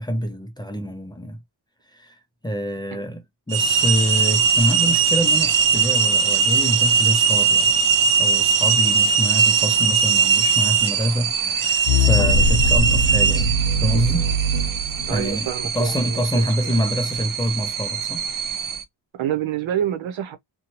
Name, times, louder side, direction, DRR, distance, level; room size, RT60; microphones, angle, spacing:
voice 1, 0.0-1.4 1.9-2.2 2.4-7.7 8.2-14.3 15.1-15.5 15.7-18.2, equal, 10° left, 0.5 m, -26 dB
sound 1, 3.5-18.8, right 6 dB, 45° right, 0.6 m, -20 dB
sound 2, 11.9-15.9, left 1 dB, 55° left, 0.8 m, -22 dB
voice 2, 15.1-16.9 19.1-20.4, right 10 dB, 85° right, 0.8 m, -28 dB
2.7 x 2.2 x 2.9 m
wide cardioid pair, 115°, 46 cm